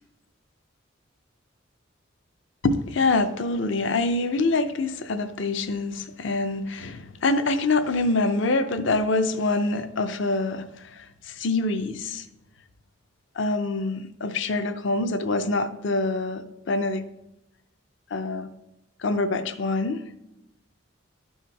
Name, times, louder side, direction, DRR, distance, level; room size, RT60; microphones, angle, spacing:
voice 1, 2.6-12.2 13.4-17.0 18.1-18.5 19.0-20.0, left 3 dB, 60° left, 11 dB, 0.6 m, -25 dB
11.5 x 4.3 x 4.6 m, 0.90 s
head